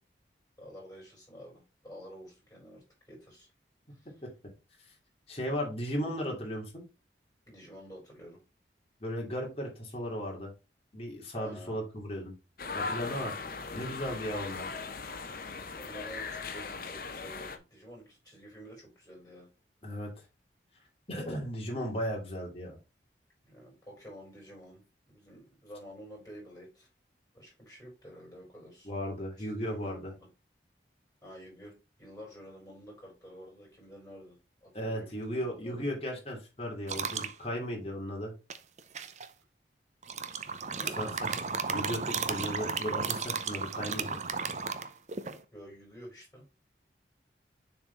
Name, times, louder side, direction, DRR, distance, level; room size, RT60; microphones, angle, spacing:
voice 1, 0.6-3.5 3.9-4.1 7.5-8.4 11.3-11.8 14.2-14.7 15.7-19.5 19.9-20.0 23.5-24.8 25.1-26.9 27.3-28.9 29.4-30.3 31.2-31.7 32.0-35.9 40.6-41.2 45.5-46.4, equal, 15° left, -4 dB, 4.2 m, -50 dB
voice 2, 5.3-6.8 9.0-10.5 10.9-12.3 12.7-13.3 13.7-14.7 19.8-20.1 21.1-22.8 28.8-30.1 34.7-38.3 41.0-41.4 41.7-44.2, equal, 35° left, -1 dB, 2.5 m, -36 dB
sound 1, 12.6-17.6, left 4 dB, 55° left, 0.8 m, -39 dB
sound 2, 36.9-37.3 38.5-39.3 40.0-45.4, right 5 dB, 40° right, 0.6 m, -34 dB
7.0 x 4.0 x 4.5 m, 0.29 s
head